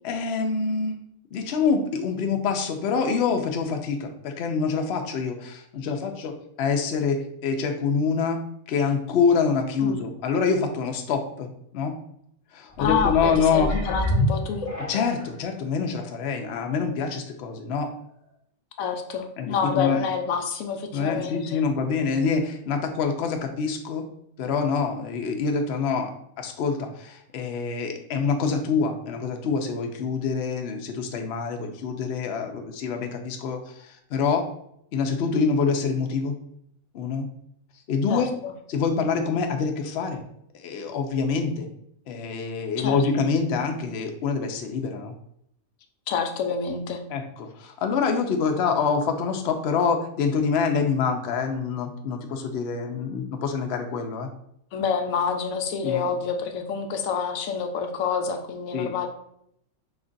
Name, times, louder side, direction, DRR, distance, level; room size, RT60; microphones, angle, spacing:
voice 1, 0.0-1.0 1.3-11.9 12.5-13.7 14.8-17.9 19.4-20.0 20.9-24.0 24.4-34.5 34.9-36.3 36.9-37.3 37.9-38.3 38.7-40.2 40.5-41.7 42.1-45.1 47.1-54.3 55.8-56.1 58.7-59.1, left 5 dB, 60° left, 4 dB, 0.8 m, -26 dB
sound 1, 12.7-15.4 16.0-16.1, left 1 dB, 30° left, 1.0 m, -27 dB
voice 2, 12.8-14.7 18.8-21.6 38.1-38.5 42.8-43.0 46.1-47.1 54.7-59.1, left 6 dB, 85° left, 6 dB, 1.0 m, -28 dB
4.9 x 2.4 x 3.9 m, 0.73 s
omnidirectional pair, 1.4 m